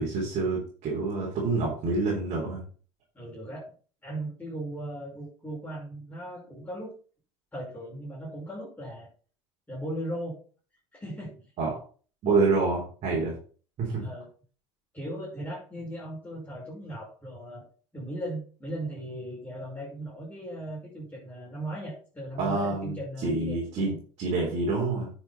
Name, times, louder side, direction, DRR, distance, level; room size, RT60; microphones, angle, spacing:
voice 1, 0.0-2.6 11.6-11.8 12.2-13.3 13.8-14.0 22.4-23.0 23.2-25.1, right 3 dB, 50° right, -3 dB, 3.9 m, -27 dB
voice 2, 3.1-3.6 4.0-6.9 7.5-9.1 9.7-10.4 10.9-11.3 14.0-14.3 14.9-17.7 17.9-23.7, right 1 dB, 10° left, -7 dB, 5.8 m, -37 dB
10.0 x 6.5 x 4.3 m, 0.40 s
hypercardioid pair, 70°, 15 cm